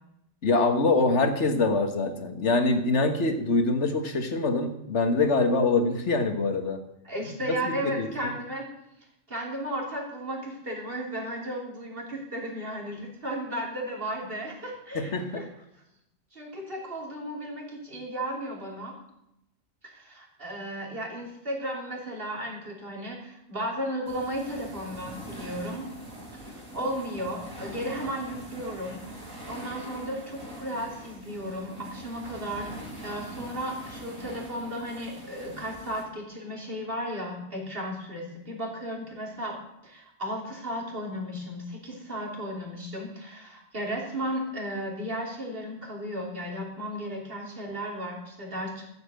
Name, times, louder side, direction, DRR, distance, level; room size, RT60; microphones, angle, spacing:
voice 1, 0.4-6.8 7.5-8.3 14.9-15.4, left 3 dB, 60° left, 7 dB, 1.7 m, -24 dB
voice 2, 7.0-8.7 9.3-15.5 16.3-19.0 19.8-25.9 26.3-39.6 39.8-48.8, equal, 45° right, -1 dB, 3.4 m, -34 dB
sound 1, 24.1-36.0, right 1 dB, 75° right, 4.2 m, -42 dB
13.5 x 8.0 x 7.7 m, 0.83 s
omnidirectional pair, 1.4 m